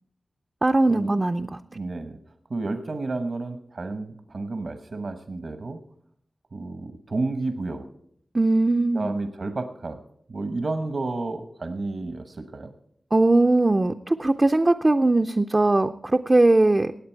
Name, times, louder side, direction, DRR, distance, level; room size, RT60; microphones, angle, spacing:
voice 1, 0.6-1.6 8.3-9.1 13.1-16.9, right 2 dB, 30° right, 5 dB, 0.4 m, -20 dB
voice 2, 1.7-2.2 2.5-5.8 6.5-7.9 8.9-10.0 10.3-12.7, right 3 dB, 65° right, 8 dB, 1.0 m, -31 dB
17.0 x 8.6 x 4.5 m, 0.68 s
wide cardioid pair, 80°, 0 cm